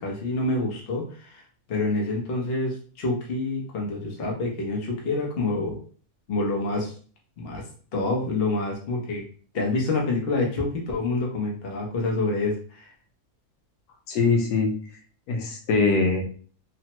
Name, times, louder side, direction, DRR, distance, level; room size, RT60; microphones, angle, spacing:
voice 1, 0.0-1.4 1.7-5.7 6.3-6.9 7.4-7.6 7.9-9.2 9.5-12.9, left 2 dB, 45° left, -1 dB, 0.8 m, -27 dB
voice 2, 14.1-14.7 15.3-16.2, left 4 dB, 85° left, 3 dB, 1.2 m, -22 dB
3.2 x 2.1 x 2.9 m, 0.42 s
omnidirectional pair, 1.7 m